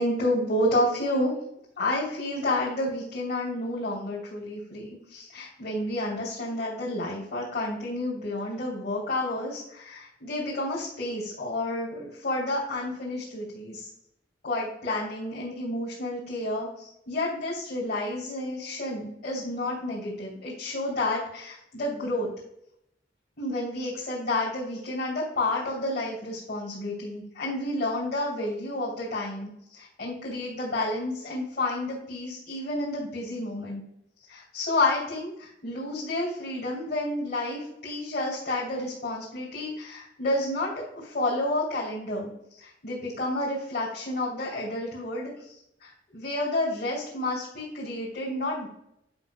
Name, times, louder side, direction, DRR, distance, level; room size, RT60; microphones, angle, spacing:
voice 1, 0.0-1.3 1.8-13.9 14.4-22.3 23.4-33.8 34.3-45.5 45.8-48.7, left 1 dB, 60° left, -7 dB, 2.8 m, -30 dB
9.8 x 5.9 x 2.2 m, 0.79 s
head